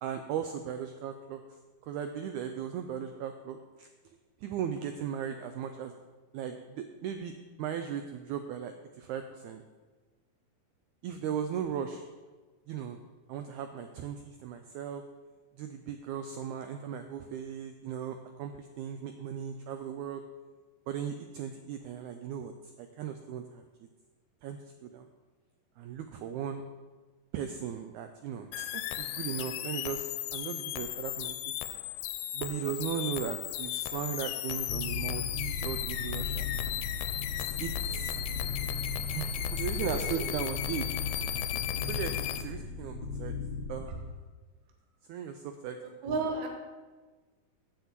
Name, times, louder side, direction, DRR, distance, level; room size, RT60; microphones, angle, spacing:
voice 1, 0.0-1.4 1.8-3.9 4.4-5.9 6.3-9.6 11.0-12.1 12.7-13.0 13.3-15.0 15.6-20.2 20.9-23.6 24.4-25.1 25.8-26.6 27.3-31.6 32.3-36.5 37.6-38.1 39.1-41.0 41.4-41.5 41.8-43.4 43.7-44.1 45.1-46.3, right 8 dB, 90° right, 7 dB, 1.7 m, -37 dB
sound 1, 28.5-42.4, left 13 dB, 85° left, 2.4 m, -36 dB
sound 2, 34.7-43.9, left 4 dB, 70° left, 2.1 m, -36 dB
voice 2, 45.8-46.5, right 3 dB, 60° right, 1 dB, 2.4 m, -33 dB
7.4 x 7.1 x 7.4 m, 1.3 s
omnidirectional pair, 4.1 m